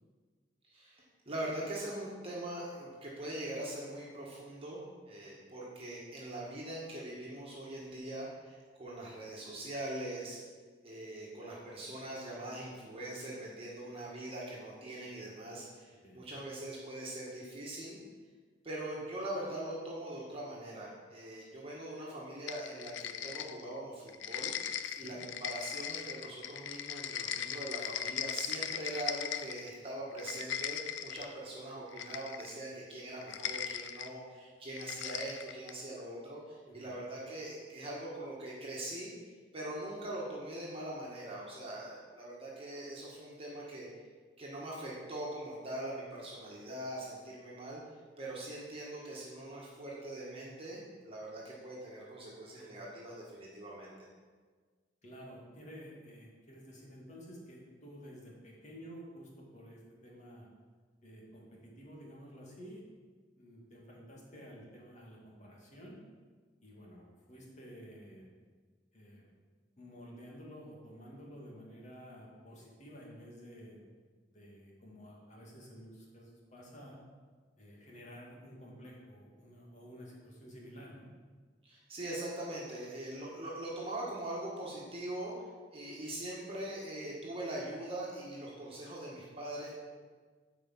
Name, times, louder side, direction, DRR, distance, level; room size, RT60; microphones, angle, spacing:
voice 1, 0.6-10.4 10.8-18.0 18.6-24.5 25.0-39.1 39.5-43.9 44.4-47.8 48.2-54.1 81.6-85.3 85.7-89.8, right 1 dB, 30° right, -5 dB, 1.7 m, -42 dB
sound 1, 22.5-23.8 24.1-29.7 30.1-31.3 31.9-32.6 33.2-34.1 34.8-35.8, left 9 dB, 85° left, 0.5 m, -39 dB
voice 2, 24.9-25.2 36.7-37.0 55.0-60.5 61.0-62.8 63.4-66.0 66.6-68.3 68.9-69.2 69.8-73.8 74.3-77.0 77.6-81.1, equal, 40° left, -3 dB, 2.3 m, -51 dB
8.7 x 5.1 x 7.4 m, 1.5 s
head